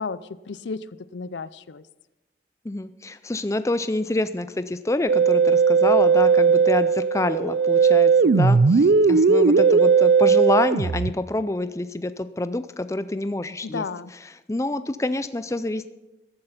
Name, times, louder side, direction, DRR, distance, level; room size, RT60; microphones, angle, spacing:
voice 1, 0.0-1.9 13.6-14.1, left 4 dB, 80° left, 17 dB, 0.5 m, -33 dB
voice 2, 2.6-13.8 14.5-15.9, left 2 dB, 15° left, 12 dB, 0.4 m, -27 dB
Musical instrument, 5.1-11.1, right 5 dB, 65° right, 0.4 m, -17 dB
14.5 x 11.5 x 5.8 m, 1.0 s
head